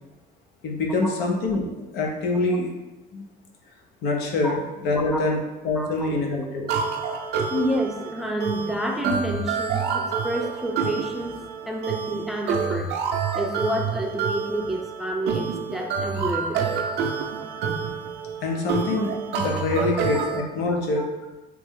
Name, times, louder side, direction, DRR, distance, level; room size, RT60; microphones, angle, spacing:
voice 1, 0.6-2.7 3.1-3.3 4.0-6.7 18.4-21.1, left 2 dB, 80° left, 1 dB, 0.8 m, -25 dB
sound 1, 6.7-20.4, right 6 dB, 80° right, 0.5 m, -28 dB
voice 2, 7.5-11.3 11.7-12.9 13.3-16.7 19.8-19.9 20.1-20.2 21.0-21.1, equal, ahead, 1 dB, 0.5 m, -29 dB
3.3 x 3.0 x 3.6 m, 1.1 s
cardioid pair, 110°, 17 cm